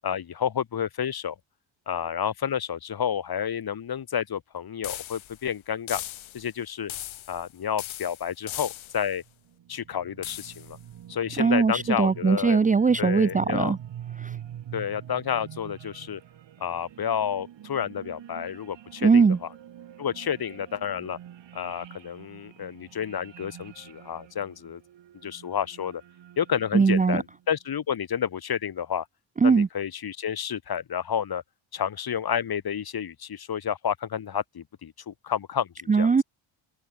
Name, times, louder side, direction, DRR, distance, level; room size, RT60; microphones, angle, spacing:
voice 1, 0.0-1.3 1.9-6.0 6.3-6.9 7.3-9.2 9.7-10.8 11.1-12.6 13.0-13.7 14.7-16.2 16.6-19.5 20.0-21.2 21.5-24.8 25.2-26.0 26.4-29.0 29.4-31.4 31.7-36.1, left 8 dB, 45° left, 5.0 m, -30 dB
sound 1, 4.8-5.4 5.9-6.5 6.9-7.5 7.8-9.1 10.2-10.7, left 13 dB, 65° left, 4.5 m, -38 dB
sound 2, 9.2-27.4, right 11 dB, 60° right, 7.1 m, -45 dB
voice 2, 11.4-13.8 14.2-14.4 19.0-19.4 26.7-27.2 29.4-29.7 35.9-36.2, right 5 dB, 15° right, 0.6 m, -20 dB
cardioid pair, 95°, 50 cm